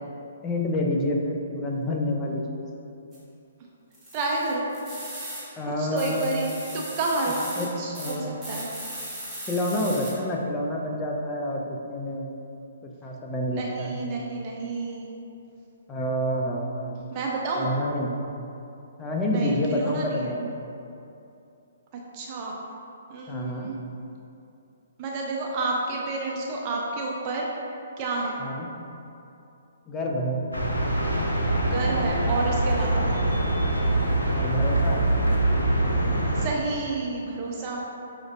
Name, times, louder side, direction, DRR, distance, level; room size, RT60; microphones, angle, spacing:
voice 1, 0.4-2.6 5.6-6.3 7.6-8.3 9.5-12.3 12.8-14.0 15.9-16.9 17.6-18.1 19.0-20.5 23.3-23.7 28.4-28.7 29.9-30.5 34.3-35.1, left 1 dB, 15° left, -1 dB, 0.5 m, -28 dB
sound 1, 3.1-3.2 3.9-5.4 6.0-7.7 8.0-8.1 8.4-10.1, right 1 dB, 5° right, 1.5 m, -38 dB
voice 2, 4.1-4.7 5.8-8.7 13.5-15.1 17.1-17.7 19.3-20.3 21.9-22.6 23.1-23.8 25.0-27.5 28.0-28.4 31.6-33.1 36.3-37.8, right 3 dB, 35° right, -2 dB, 0.4 m, -30 dB
sound 2, 30.5-36.5, right 1 dB, 90° left, 0.5 m, -24 dB
6.0 x 2.5 x 2.5 m, 2.7 s
figure-of-eight pair, 130°, 0 cm